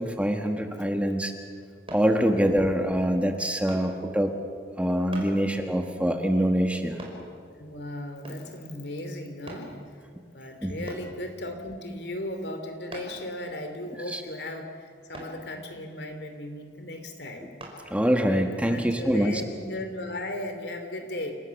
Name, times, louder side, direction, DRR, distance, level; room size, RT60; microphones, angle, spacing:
voice 1, 0.0-1.3 1.9-4.3 4.8-7.0 10.6-10.7 14.1-14.2 17.9-19.4, equal, 10° right, 5 dB, 1.5 m, -24 dB
sound 1, 1.9-2.1 3.7-3.9 5.1-5.4 7.0-7.2 8.2-8.5 9.5-9.7 10.9-11.1 12.9-13.2 15.1-15.4 17.6-17.8 18.4-18.5, right 1 dB, 35° right, 5.2 m, -41 dB
voice 2, 7.6-9.7 10.3-17.5 18.6-21.4, left 1 dB, 70° left, 6 dB, 3.0 m, -36 dB
29.0 x 18.0 x 7.2 m, 2.1 s
head